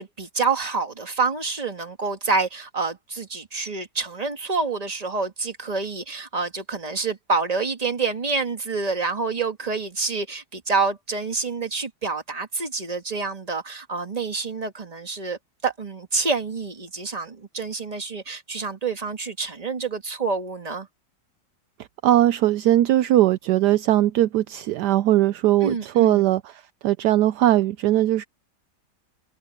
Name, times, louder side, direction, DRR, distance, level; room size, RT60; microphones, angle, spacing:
voice 1, 0.0-20.9 25.6-26.3, right 4 dB, 20° right, 1.8 m, -27 dB
voice 2, 22.0-26.5 26.8-28.2, right 13 dB, 75° right, 1.1 m, -19 dB
omnidirectional pair, 1.9 m